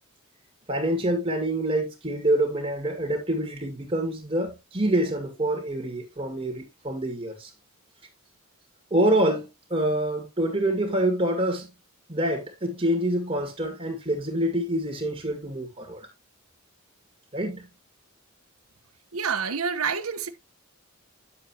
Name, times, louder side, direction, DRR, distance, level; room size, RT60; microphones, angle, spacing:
voice 1, 0.7-7.5 8.9-11.7 12.1-16.0 17.3-17.7, right 1 dB, 25° right, 2.2 m, -26 dB
voice 2, 19.1-20.3, right 6 dB, 85° right, 1.2 m, -27 dB
10.0 x 7.2 x 2.9 m
head